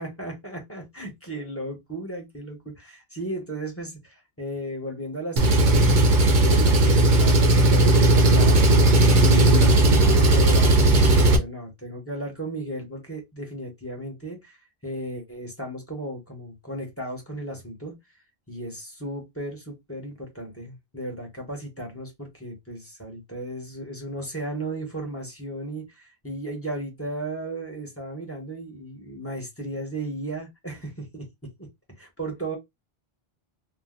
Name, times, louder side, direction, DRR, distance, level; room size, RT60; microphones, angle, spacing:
voice 1, 0.0-18.0 18.5-31.7 32.0-32.6, right 1 dB, 15° left, 1.1 m, -35 dB
Engine, 5.4-11.4, right 2 dB, 55° right, 0.7 m, -17 dB
2.5 x 2.2 x 3.6 m
omnidirectional pair, 1.0 m